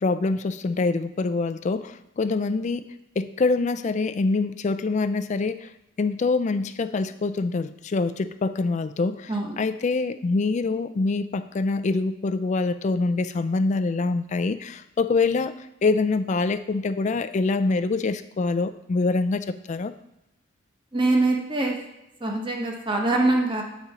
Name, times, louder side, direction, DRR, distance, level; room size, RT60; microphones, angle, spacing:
voice 1, 0.0-2.8 3.2-5.7 6.0-15.5 15.8-19.9, left 3 dB, 40° left, 11 dB, 0.3 m, -25 dB
voice 2, 20.9-21.8 22.2-23.6, right 2 dB, 25° right, 1 dB, 1.1 m, -23 dB
8.2 x 4.2 x 4.9 m, 0.91 s
head